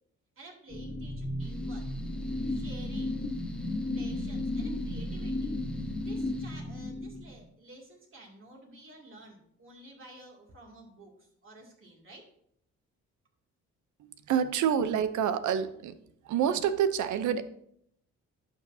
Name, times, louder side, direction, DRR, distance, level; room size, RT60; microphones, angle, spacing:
voice 1, 0.4-1.9 2.5-3.2 3.9-12.3, right 2 dB, 45° right, -1 dB, 2.5 m, -52 dB
sound 1, 0.7-7.4, left 1 dB, 25° left, 1.6 m, -34 dB
Mechanical fan, 1.4-6.6, right 2 dB, 5° left, 1.0 m, -55 dB
voice 2, 14.0-16.0 16.2-17.4, right 8 dB, 75° right, 12 dB, 0.7 m, -28 dB
11.5 x 6.1 x 2.7 m, 0.70 s
cardioid pair, 90°, 30 cm